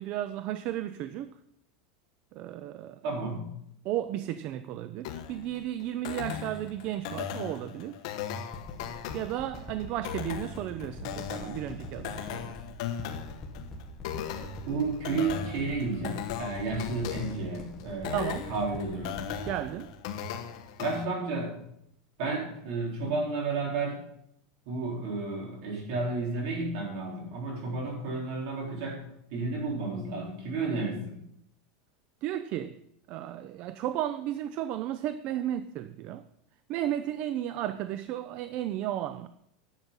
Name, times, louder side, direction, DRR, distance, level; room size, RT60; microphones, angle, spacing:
voice 1, 0.0-1.4 2.3-3.0 3.8-8.0 9.1-12.6 18.1-18.5 19.5-20.0 32.2-32.8 33.1-36.3 36.7-39.3, right 12 dB, 40° right, 0.4 m, -34 dB
voice 2, 3.0-3.5 14.7-18.2 18.5-19.2 20.8-21.6 22.2-24.0 24.7-29.0 29.3-31.2, right 3 dB, 55° right, 4.2 m, -32 dB
sound 1, 5.0-21.0, left 8 dB, 60° left, 1.2 m, -38 dB
sound 2, 8.5-21.3 21.9-22.0, left 1 dB, 15° left, 1.7 m, -43 dB
11.0 x 7.4 x 5.5 m
supercardioid pair, 165°, 3 cm